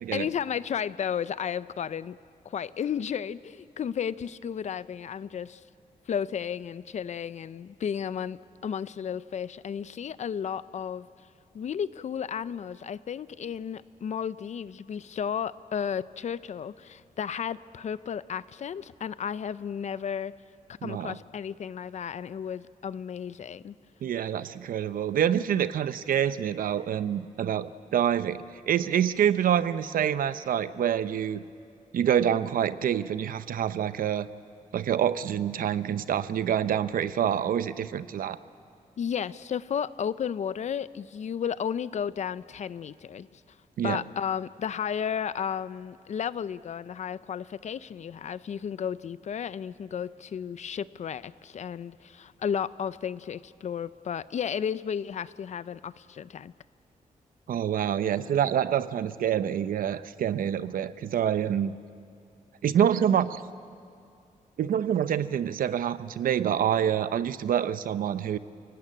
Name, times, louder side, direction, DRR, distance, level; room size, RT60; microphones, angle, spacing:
voice 1, 0.1-2.2 2.4-5.6 6.1-11.1 11.5-20.3 20.8-23.7 39.0-43.4 43.8-56.5, left 8 dB, 55° left, 16 dB, 0.6 m, -33 dB
voice 2, 20.8-21.2 24.0-31.4 31.9-34.3 34.7-38.4 43.8-44.0 57.5-61.7 62.6-63.5 64.6-68.4, right 9 dB, 85° right, 14 dB, 0.7 m, -26 dB
28.5 x 17.5 x 8.8 m, 2.4 s
wide cardioid pair, 130°, 14 cm